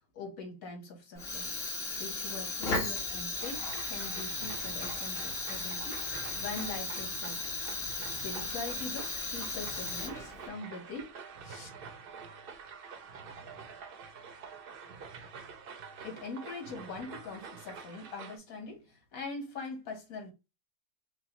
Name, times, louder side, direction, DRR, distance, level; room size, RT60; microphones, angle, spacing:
voice 1, 0.1-1.5 2.0-3.6 3.9-6.0 6.4-7.4 8.2-11.1 11.4-11.7 16.0-20.3, left 3 dB, 85° left, 1.7 m, -42 dB
Fire, 1.1-10.5, left 3 dB, 45° left, 1.5 m, -36 dB
sound 1, 3.4-18.4, right 5 dB, 60° right, 0.6 m, -47 dB
5.5 x 2.0 x 3.0 m
omnidirectional pair, 1.4 m